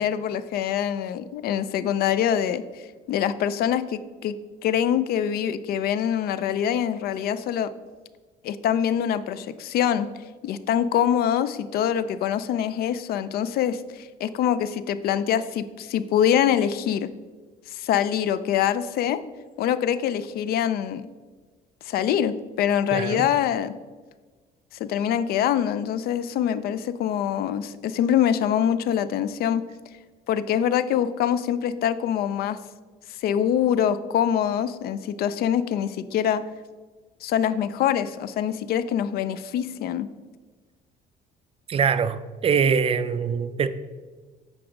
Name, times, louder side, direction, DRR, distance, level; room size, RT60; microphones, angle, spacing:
voice 1, 0.0-2.8 3.1-4.4 4.6-7.7 8.4-10.1 10.4-17.1 17.7-19.2 19.6-21.0 21.8-23.7 24.8-29.6 30.3-32.6 33.2-36.4 37.2-40.1, left 9 dB, 65° left, 0.4 m, -24 dB
voice 2, 22.9-23.3 41.7-43.7, right 6 dB, 35° right, 0.4 m, -23 dB
7.8 x 4.8 x 3.7 m
cardioid pair, 110°, 17 cm